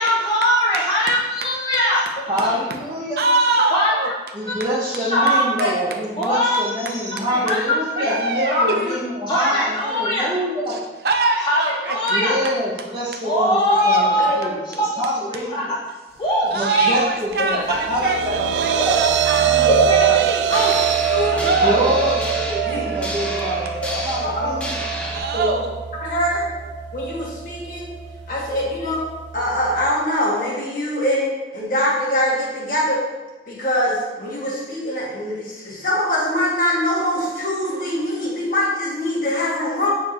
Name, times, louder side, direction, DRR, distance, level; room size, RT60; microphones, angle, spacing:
voice 1, 0.0-2.6 3.7-4.1 4.4-5.3 6.2-8.2 9.3-10.3 11.4-12.4 13.2-14.3 14.7-15.0 15.3-15.8 16.2-17.0 17.5-17.8 18.8-19.0 20.1-20.9 21.3-21.7, left 1 dB, 25° left, -8 dB, 2.0 m, -22 dB
voice 2, 2.3-3.2 4.3-10.8 12.1-15.6 16.5-17.6 17.9-19.0 19.4-19.9 21.6-24.9, equal, 25° right, -7 dB, 1.0 m, -26 dB
voice 3, 3.2-4.1 8.0-8.8 10.7-10.8 11.0-12.0 13.6-14.1 16.5-19.7 20.1-20.4 21.5-21.9 22.5-23.1 25.1-25.7, right 3 dB, 65° right, 3 dB, 0.8 m, -23 dB
voice 4, 5.2-5.8 8.4-8.9 14.2-14.4 19.7-20.1 21.1-21.7 22.6-22.8 24.2-24.6 25.3-25.5 26.0-26.5 26.9-27.9 28.3-29.0 29.3-33.0 33.5-39.9, equal, 50° left, -6 dB, 2.0 m, -23 dB
sound 1, 17.6-29.9, right 9 dB, 85° right, 0.3 m, -24 dB
sound 2, 20.5-25.2, equal, 5° left, 0.7 m, -30 dB
9.1 x 4.5 x 3.1 m, 1.2 s
head